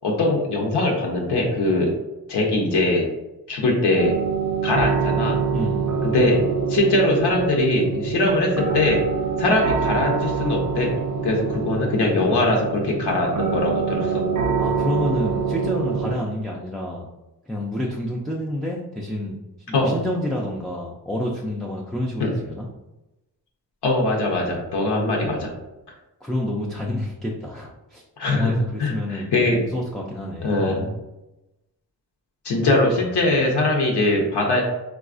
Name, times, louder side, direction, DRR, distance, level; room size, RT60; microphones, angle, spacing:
voice 1, 0.0-1.9 2.3-3.1 3.5-4.2 4.6-5.4 6.0-6.4 6.7-9.0 9.4-10.9 11.2-14.2 19.7-19.9 22.2-22.3 23.8-25.5 28.2-28.5 28.8-29.6 30.4-30.9 32.4-34.6, left 2 dB, 75° left, 0 dB, 0.9 m, -21 dB
sound 1, 4.0-16.1, right 5 dB, 45° right, 0.6 m, -25 dB
voice 2, 5.5-5.9 14.6-17.1 17.5-19.4 19.7-22.6 26.2-28.0 28.3-30.9 32.8-33.1, left 1 dB, ahead, -3 dB, 0.3 m, -29 dB
3.9 x 2.3 x 2.5 m, 0.97 s
cardioid pair, 100°, 41 cm